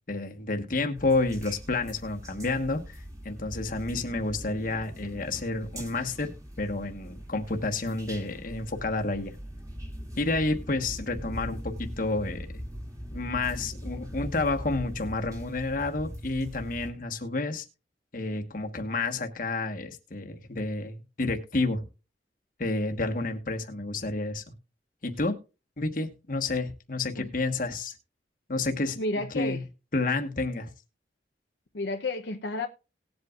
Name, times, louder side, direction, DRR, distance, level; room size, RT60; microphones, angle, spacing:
voice 1, 0.1-3.0 3.2-9.3 10.2-12.5 13.1-17.6 18.1-21.9 22.6-24.4 25.0-25.3 25.8-27.9 28.5-29.6 29.9-30.7, left 2 dB, 50° left, 1.3 m, -30 dB
sound 1, 0.9-16.9, equal, 20° right, 2.3 m, -41 dB
voice 2, 29.0-29.6 31.7-32.7, left 2 dB, 75° left, 0.7 m, -31 dB
19.0 x 7.9 x 2.4 m
head